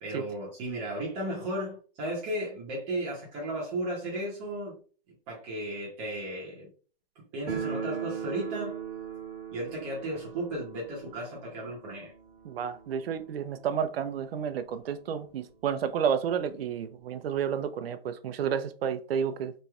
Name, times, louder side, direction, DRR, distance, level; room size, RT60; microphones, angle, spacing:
voice 1, 0.0-4.8 5.3-6.7 7.2-8.8 9.5-12.1, right 1 dB, 20° right, 0.9 m, -35 dB
sound 1, 7.5-14.2 14.4-14.5 14.8-14.9 15.6-15.7 16.0-17.2, right 8 dB, 70° right, 1.2 m, -39 dB
voice 2, 12.4-19.5, right 8 dB, 85° right, 0.6 m, -31 dB
4.1 x 3.2 x 2.4 m
hypercardioid pair, 170°, 29 cm